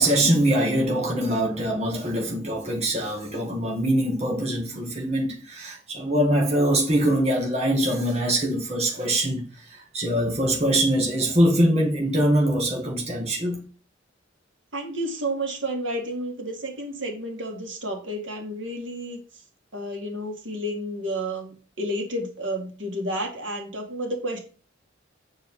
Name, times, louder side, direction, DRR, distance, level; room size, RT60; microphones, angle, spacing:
voice 1, 0.0-9.4 9.7-13.6, right 1 dB, 35° right, 2.0 m, -23 dB
voice 2, 14.7-19.2 19.7-24.4, right 1 dB, 75° right, 2.9 m, -31 dB
8.9 x 4.8 x 5.6 m
head